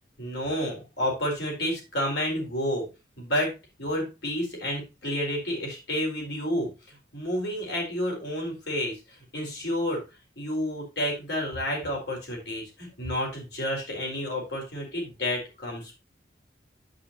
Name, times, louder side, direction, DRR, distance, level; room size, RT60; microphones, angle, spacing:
voice 1, 0.2-2.9 3.2-6.7 7.1-9.0 9.3-10.0 10.4-15.9, equal, 60° left, 0 dB, 4.3 m, -30 dB
8.5 x 8.4 x 2.7 m, 0.27 s
head